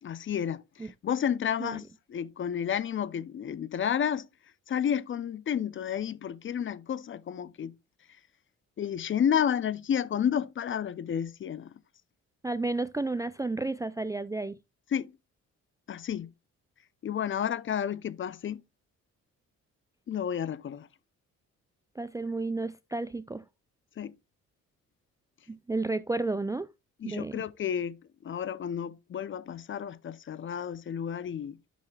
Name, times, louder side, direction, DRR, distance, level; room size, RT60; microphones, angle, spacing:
voice 1, 0.0-4.3 4.7-7.7 8.8-11.7 14.9-15.1 15.9-16.3 17.0-18.6 20.1-20.9 24.0-24.1 27.0-31.6, left 8 dB, 40° left, 0.5 m, -31 dB
voice 2, 12.4-14.6 22.0-23.4 25.5-26.7 27.0-27.4, right 2 dB, 10° right, 0.3 m, -32 dB
10.5 x 6.3 x 2.3 m
cardioid pair, 90°, 30 cm